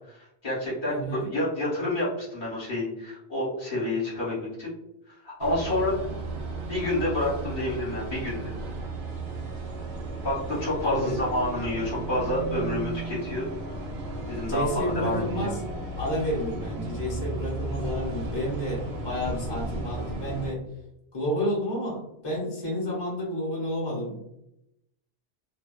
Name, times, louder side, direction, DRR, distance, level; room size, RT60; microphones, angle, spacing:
voice 1, 0.2-4.7 5.2-6.0 6.7-8.5 10.2-13.5 14.3-15.5, left 1 dB, 55° left, -6 dB, 1.0 m, -29 dB
voice 2, 0.9-1.3 10.8-11.2 14.5-15.6 16.0-20.6 21.1-24.3, equal, 25° left, -5 dB, 0.9 m, -30 dB
sound 1, 5.4-20.5, right 2 dB, 80° right, 0.8 m, -34 dB
2.5 x 2.2 x 2.2 m, 0.82 s
omnidirectional pair, 1.1 m